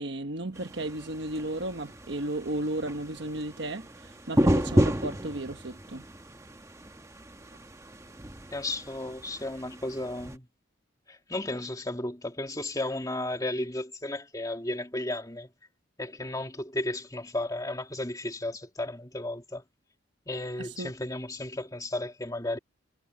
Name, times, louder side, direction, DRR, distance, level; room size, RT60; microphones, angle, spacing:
voice 1, 0.0-6.0 20.6-20.9, right 1 dB, 60° right, 1.2 m, -34 dB
sound 1, 0.6-10.4, equal, 15° right, 1.1 m, -32 dB
voice 2, 8.5-10.5 11.1-15.5 16.0-19.6 20.3-22.6, left 1 dB, 20° left, 2.4 m, -34 dB
head